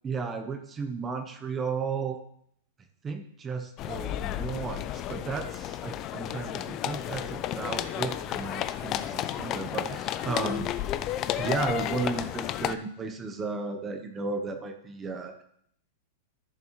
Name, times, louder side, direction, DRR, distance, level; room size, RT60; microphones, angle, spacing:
voice 1, 0.0-2.2 3.0-10.7 11.4-15.4, right 4 dB, 15° right, 6 dB, 0.7 m, -34 dB
sound 1, 3.8-12.8, left 12 dB, 25° left, 0.4 m, -32 dB
14.0 x 6.7 x 3.0 m, 0.68 s
supercardioid pair, 170°, 0 cm